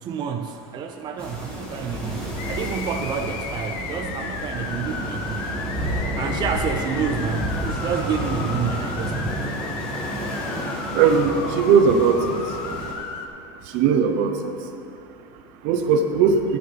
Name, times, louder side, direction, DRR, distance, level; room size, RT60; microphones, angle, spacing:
voice 1, 0.0-9.4, right 7 dB, 30° right, 4 dB, 0.5 m, -29 dB
sound 1, 1.2-12.9, right 1 dB, 10° left, 2.2 m, -30 dB
sound 2, 2.4-13.3, left 5 dB, 55° left, 0.8 m, -34 dB
voice 2, 10.9-12.2 13.7-14.3 15.6-16.4, right 6 dB, 60° right, 6 dB, 0.9 m, -18 dB
13.0 x 9.2 x 3.5 m, 2.5 s
supercardioid pair, 140°, 14 cm